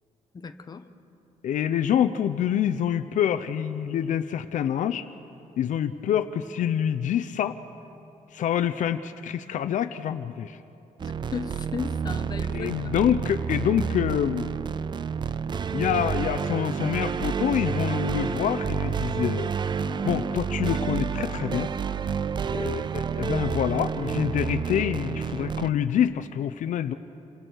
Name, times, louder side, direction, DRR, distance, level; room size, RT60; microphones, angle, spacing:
voice 1, 0.3-0.9 11.0-13.1, left 5 dB, 30° left, 7 dB, 1.1 m, -36 dB
voice 2, 1.4-5.1 5.6-7.6 8.3-10.6 12.5-14.5 15.7-19.5 20.0-21.7 22.5-26.9, left 9 dB, 70° left, 11 dB, 0.7 m, -26 dB
sound 1, 11.0-25.7, right 6 dB, 35° right, 0.5 m, -29 dB
Bass guitar, 19.8-26.1, left 3 dB, 15° left, 4.8 m, -45 dB
29.0 x 25.5 x 4.7 m, 2.8 s
cardioid pair, 130°, 14 cm